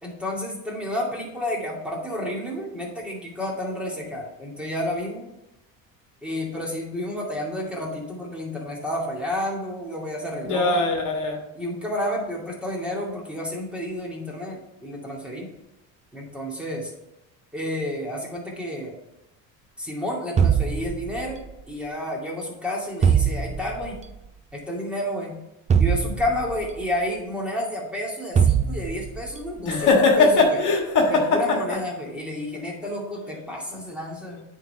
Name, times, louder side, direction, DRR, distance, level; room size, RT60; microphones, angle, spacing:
voice 1, 0.0-5.3 6.2-10.8 11.5-15.5 16.1-16.9 17.5-18.9 19.8-21.4 21.7-24.0 24.5-25.4 25.8-30.6 31.1-34.4, left 1 dB, 5° right, -2 dB, 2.4 m, -30 dB
voice 2, 10.4-11.4 29.6-31.8, left 3 dB, 55° left, 2 dB, 1.6 m, -20 dB
sound 1, 20.4-21.5 23.0-24.0 25.7-26.8 28.4-29.3, right 7 dB, 20° right, 0.4 m, -21 dB
8.8 x 4.0 x 5.7 m, 0.93 s
supercardioid pair, 105°, 37 cm